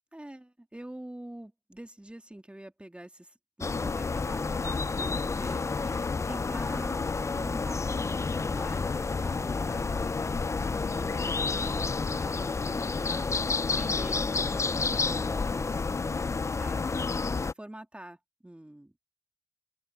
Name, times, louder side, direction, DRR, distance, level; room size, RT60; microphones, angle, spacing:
voice 1, 0.1-19.1, right 1 dB, 10° right, 2.6 m, -46 dB
sound 1, 3.6-17.5, left 4 dB, 25° left, 0.3 m, -30 dB
open air
cardioid pair, 65°, 12 cm